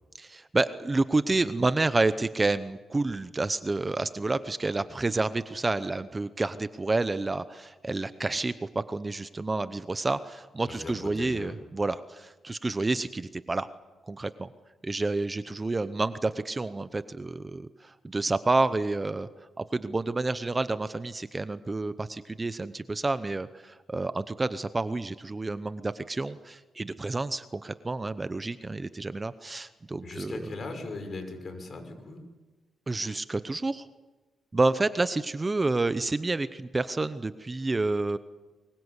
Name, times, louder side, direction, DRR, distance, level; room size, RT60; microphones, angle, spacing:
voice 1, 0.2-13.7 14.1-14.5 14.8-19.3 19.6-30.3 32.9-33.9 34.5-38.2, right 3 dB, 20° right, 12 dB, 0.8 m, -29 dB
voice 2, 10.7-11.6 30.0-32.2, left 3 dB, 45° left, 6 dB, 5.7 m, -39 dB
24.0 x 22.0 x 8.2 m, 1.2 s
cardioid pair, 100°, 0 cm